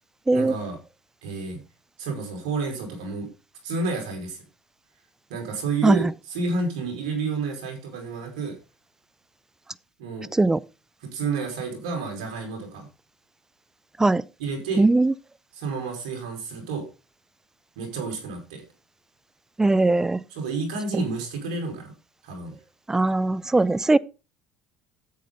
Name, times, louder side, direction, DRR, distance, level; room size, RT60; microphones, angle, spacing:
voice 1, 0.3-0.8 1.2-1.6 2.0-3.3 3.6-4.4 5.3-8.6 10.0-10.3 11.0-12.9 14.4-14.8 15.5-16.9 17.8-18.6 20.3-21.9 22.2-22.5, right 4 dB, 85° right, 4.8 m, -30 dB
voice 2, 14.8-15.1 19.6-20.2 22.9-24.0, right 2 dB, 10° right, 0.5 m, -20 dB
10.5 x 8.5 x 3.8 m
supercardioid pair, 90°, 4 cm